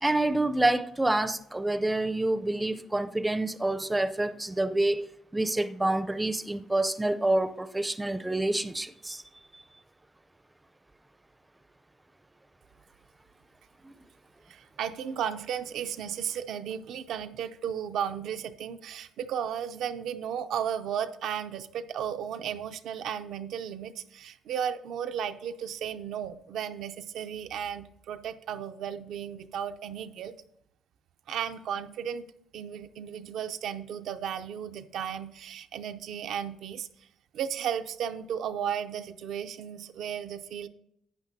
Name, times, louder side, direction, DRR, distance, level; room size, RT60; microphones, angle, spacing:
voice 1, 0.0-5.1 5.3-9.2 13.8-13.9, right 2 dB, 10° right, 0.5 m, -27 dB
voice 2, 14.5-30.3 31.3-32.2 32.5-36.9 37.3-40.7, right 8 dB, 80° right, 0.6 m, -34 dB
12.0 x 8.9 x 2.7 m
cardioid pair, 90°, 0 cm